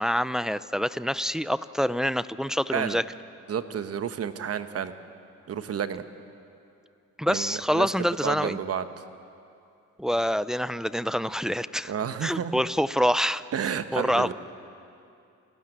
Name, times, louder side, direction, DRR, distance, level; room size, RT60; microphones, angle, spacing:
voice 1, 0.0-3.0 7.2-8.6 10.0-11.9 12.2-13.4 13.9-14.3, equal, ahead, 15 dB, 0.5 m, -26 dB
voice 2, 3.5-4.9 5.5-6.0 7.3-8.8 11.9-12.6 13.5-14.3, right 8 dB, 50° right, 10 dB, 1.1 m, -31 dB
28.5 x 12.5 x 9.0 m, 2.6 s
cardioid pair, 90°, 30 cm